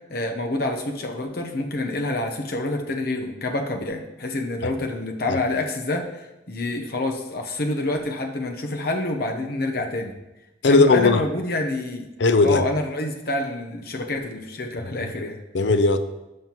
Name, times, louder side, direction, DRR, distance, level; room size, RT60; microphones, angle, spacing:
voice 1, 0.1-6.2 6.5-10.1 10.7-12.1 12.4-15.4, left 2 dB, 55° left, 0.9 m, -27 dB
voice 2, 10.6-11.3 12.2-12.6 15.0-15.3 15.5-16.0, left 3 dB, 70° left, 0.5 m, -18 dB
12.5 x 5.7 x 3.0 m
head